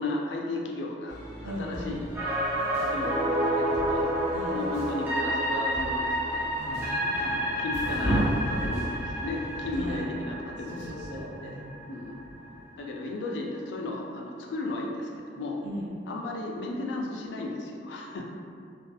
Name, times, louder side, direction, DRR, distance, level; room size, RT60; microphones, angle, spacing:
voice 1, 0.0-2.1 2.8-4.1 4.5-6.5 7.2-10.8 11.4-11.5 11.9-12.2 12.8-15.6 16.1-18.3, left 2 dB, 65° left, 0 dB, 0.3 m, -34 dB
sound 1, 1.1-10.0, equal, 15° left, 0.7 m, -43 dB
voice 2, 1.4-1.9 4.3-4.6 6.6-6.9 9.7-10.0 10.7-11.7 15.6-15.9, equal, 65° right, -5 dB, 0.6 m, -38 dB
sound 2, 2.2-12.2 12.5-12.6, right 1 dB, 10° right, 0.4 m, -30 dB
sound 3, 6.7-12.7, right 1 dB, 40° right, 1.1 m, -34 dB
2.6 x 2.3 x 2.2 m, 2.3 s
head